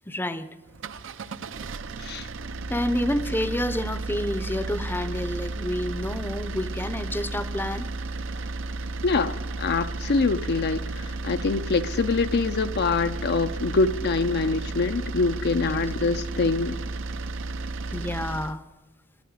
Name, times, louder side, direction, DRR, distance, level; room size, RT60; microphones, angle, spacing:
voice 1, 0.1-0.5 2.7-7.9 15.7-15.8 17.9-18.6, left 1 dB, 10° left, 0.6 m, -29 dB
sound 1, 0.7-18.6, right 3 dB, 65° right, 0.6 m, -33 dB
voice 2, 9.0-16.8, left 4 dB, 50° left, 0.5 m, -25 dB
12.5 x 12.5 x 9.5 m
head